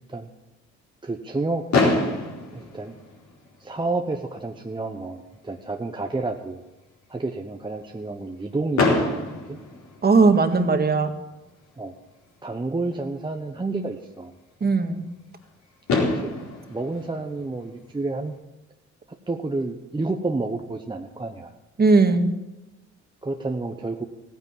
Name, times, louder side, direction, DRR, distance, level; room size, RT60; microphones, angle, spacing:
voice 1, 1.0-1.6 2.5-2.9 3.6-6.6 7.1-9.2 9.5-9.6 11.8-11.9 12.4-14.3 16.1-16.3 16.7-18.3 19.3-21.6 23.2-24.0, right 3 dB, 15° right, 3 dB, 1.0 m, -30 dB
Fireworks, 1.7-3.7 4.6-4.7 4.8-5.0 5.4-5.5 8.7-10.6 12.3-12.4 15.4-15.5 15.9-18.2, left 3 dB, 65° left, 4.3 m, -26 dB
voice 2, 10.0-11.1 14.6-15.0 21.8-22.3, right 4 dB, 30° right, 7 dB, 1.8 m, -18 dB
15.5 x 9.7 x 7.5 m, 1.0 s
cardioid pair, 90°, 30 cm